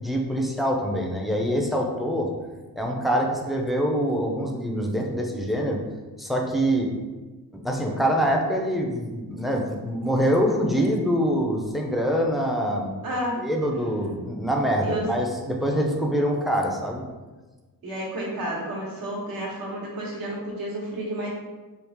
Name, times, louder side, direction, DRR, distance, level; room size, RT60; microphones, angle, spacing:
voice 1, 0.0-2.3 2.8-5.8 6.2-6.9 7.5-13.0 13.4-17.0, equal, ahead, 0 dB, 0.4 m, -25 dB
voice 2, 13.0-13.5 14.8-15.1 17.8-21.3, right 1 dB, 65° right, -3 dB, 1.2 m, -31 dB
3.2 x 2.4 x 3.4 m, 1.3 s
cardioid pair, 95°, 38 cm